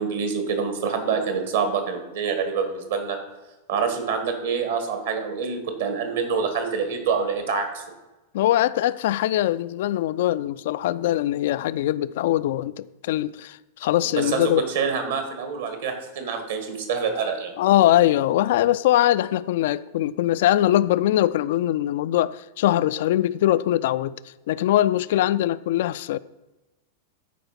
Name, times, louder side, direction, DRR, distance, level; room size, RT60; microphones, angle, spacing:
voice 1, 0.0-3.2 3.7-7.8 14.0-17.5, right 5 dB, 60° right, 1.9 m, -26 dB
voice 2, 8.3-14.6 17.6-24.2 24.5-26.2, left 13 dB, 55° left, 0.3 m, -22 dB
12.5 x 5.0 x 5.8 m
figure-of-eight pair, 90°, 0 cm